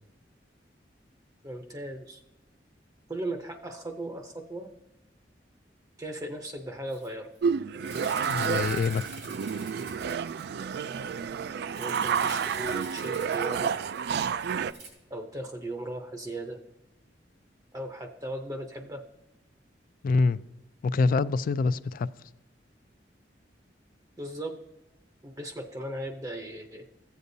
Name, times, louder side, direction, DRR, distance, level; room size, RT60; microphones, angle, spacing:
voice 1, 1.4-2.2 3.1-4.7 6.0-7.3 11.8-13.7 15.1-16.6 17.7-19.0 24.2-24.6 25.2-26.9, right 1 dB, 20° right, 0.6 m, -37 dB
Rattle (instrument), 6.9-7.1 7.3-7.4 7.8-10.8 11.7-14.3 14.7-14.9, right 3 dB, 85° right, 3.2 m, -46 dB
sound 1, 7.4-14.7, right 6 dB, 65° right, 0.3 m, -30 dB
voice 2, 8.3-9.0 20.0-20.4 20.8-22.1, left 4 dB, 50° left, 0.3 m, -25 dB
14.5 x 8.2 x 2.7 m
head